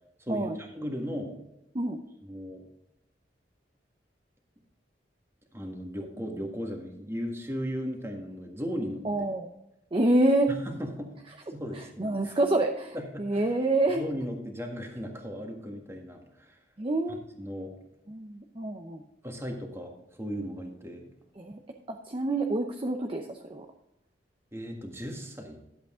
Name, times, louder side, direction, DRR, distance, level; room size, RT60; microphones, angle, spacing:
voice 1, 0.2-1.3 2.2-2.6 5.5-9.0 10.5-11.1 11.5-12.4 12.9-13.4 13.9-16.6 17.4-17.7 19.2-21.1 24.5-25.6, equal, 15° right, 2 dB, 1.6 m, -36 dB
voice 2, 9.0-9.5 9.9-10.5 12.0-14.0 16.8-17.2 18.1-19.0 21.4-21.6 21.9-23.7, right 2 dB, 30° right, 3 dB, 0.7 m, -27 dB
11.5 x 8.1 x 3.7 m, 0.85 s
head